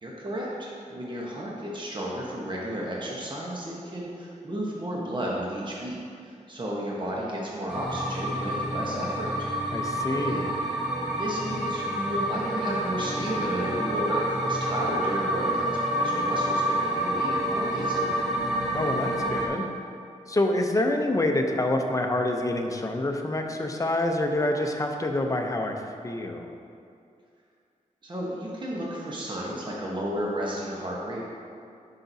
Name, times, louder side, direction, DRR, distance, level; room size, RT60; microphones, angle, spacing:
voice 1, 0.0-6.0 6.2-9.5 10.2-10.5 11.1-18.2 28.0-31.2, right 1 dB, 35° right, -4 dB, 1.0 m, -33 dB
sound 1, 7.7-19.5, right 1 dB, ahead, 1.5 m, -28 dB
voice 2, 9.7-10.5 18.7-19.7 20.3-25.8 26.0-26.5, left 1 dB, 25° left, 3 dB, 0.6 m, -27 dB
10.0 x 5.8 x 2.7 m, 2.4 s
wide cardioid pair, 110°, 14 cm